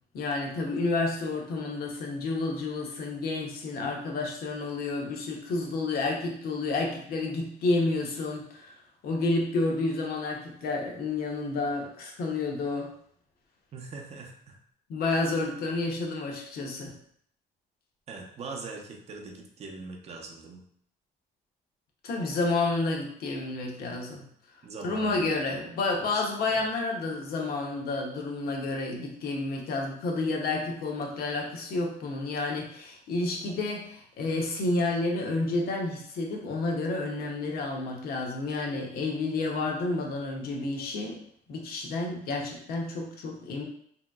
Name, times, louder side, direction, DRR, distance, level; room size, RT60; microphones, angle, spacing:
voice 1, 0.1-12.9 14.9-16.9 22.0-24.2 24.8-41.2 41.5-43.6, left 3 dB, 65° left, 1 dB, 0.7 m, -30 dB
voice 2, 13.7-14.6 18.1-20.6 24.6-25.8 26.1-26.2 26.5-26.7, right 3 dB, 40° right, 2 dB, 0.6 m, -42 dB
3.0 x 2.7 x 2.3 m, 0.66 s
cardioid pair, 110°, 17 cm